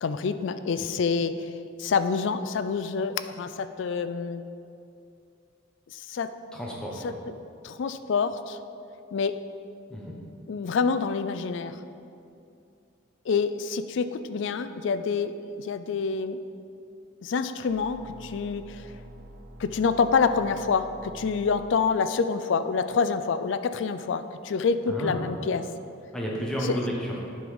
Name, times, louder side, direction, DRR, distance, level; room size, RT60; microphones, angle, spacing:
voice 1, 0.0-1.5 1.8-4.4 5.9-6.3 7.0-7.1 7.6-8.6 9.1-9.4 10.5-11.8 13.3-16.4 17.2-18.9 19.6-25.6 26.6-26.8, left 5 dB, 65° left, 11 dB, 0.4 m, -27 dB
voice 2, 6.5-7.2 9.9-10.1 24.9-25.3 26.1-27.2, equal, 5° left, -4 dB, 1.1 m, -31 dB
sound 1, 17.7-21.7, right 1 dB, 40° right, 0.6 m, -46 dB
7.7 x 5.5 x 5.1 m, 2.6 s
head